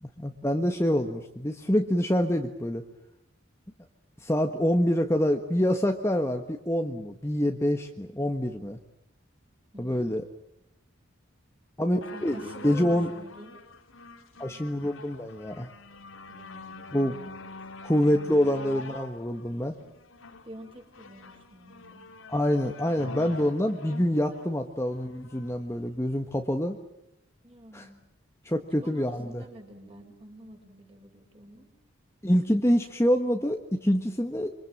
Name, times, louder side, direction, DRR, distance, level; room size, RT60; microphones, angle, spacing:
voice 1, 0.0-2.8 4.2-8.8 9.8-10.2 11.8-12.4 12.6-13.1 14.4-15.7 16.9-17.2 17.8-19.8 22.3-26.8 27.7-27.9 28.4-29.4 32.2-34.5, equal, 15° left, 4 dB, 1.5 m, -26 dB
voice 2, 9.7-10.2 12.1-13.6 16.3-17.5 20.4-22.1 27.4-28.0 28.5-31.7, right 1 dB, 25° right, 3 dB, 5.8 m, -48 dB
sound 1, 12.0-25.6 26.3-26.4, left 3 dB, 90° left, 2.7 m, -45 dB
27.0 x 25.0 x 7.5 m, 0.82 s
head